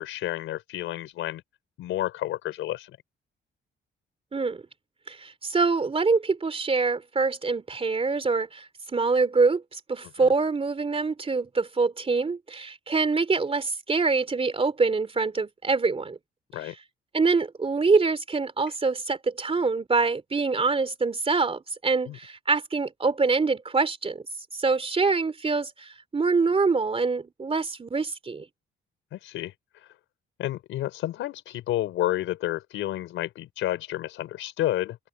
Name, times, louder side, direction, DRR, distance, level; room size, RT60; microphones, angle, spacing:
voice 1, 0.0-1.4 1.8-2.9 10.2-10.3 16.5-16.7 22.1-22.2 29.1-29.9 30.4-35.0, left 14 dB, 85° left, 4.6 m, -30 dB
voice 2, 4.3-4.6 5.1-16.2 16.6-16.8 17.1-24.2 24.5-28.5, right 4 dB, 30° right, 3.4 m, -25 dB
cardioid pair, 90°, 20 cm